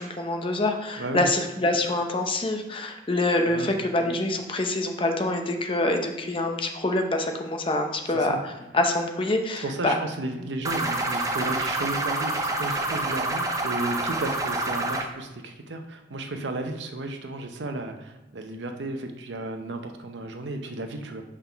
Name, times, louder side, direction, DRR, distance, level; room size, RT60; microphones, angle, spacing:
voice 1, 0.0-9.9, left 2 dB, 30° left, 4 dB, 0.7 m, -26 dB
voice 2, 1.0-1.3 3.5-3.7 8.1-8.4 9.6-21.2, right 2 dB, 80° right, 5 dB, 0.7 m, -33 dB
sound 1, 10.6-15.0, right 2 dB, 20° right, 0.6 m, -27 dB
5.7 x 3.7 x 5.7 m, 1.0 s
head